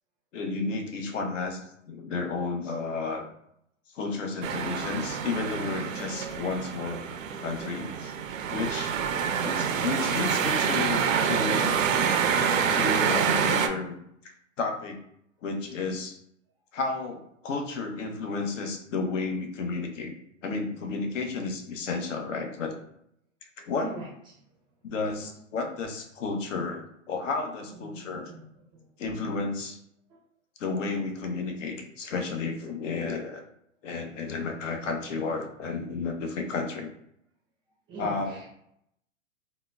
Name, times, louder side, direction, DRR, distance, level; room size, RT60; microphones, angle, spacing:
voice 1, 0.3-3.3 3.9-7.0 7.4-8.1 8.5-9.0 9.4-11.8 12.7-14.0 14.6-15.0 15.4-16.2 16.7-20.2 20.4-22.8 23.6-23.9 24.8-28.3 29.0-29.8 30.6-33.4 33.8-36.9 38.0-38.4, left 4 dB, 70° left, 4 dB, 0.7 m, -32 dB
sound 1, 4.4-13.7, right 7 dB, 90° right, 0.5 m, -27 dB
voice 2, 27.9-28.4 37.9-38.5, right 2 dB, 10° right, -4 dB, 0.4 m, -40 dB
3.8 x 2.1 x 2.2 m, 0.73 s
hypercardioid pair, 135°, 39 cm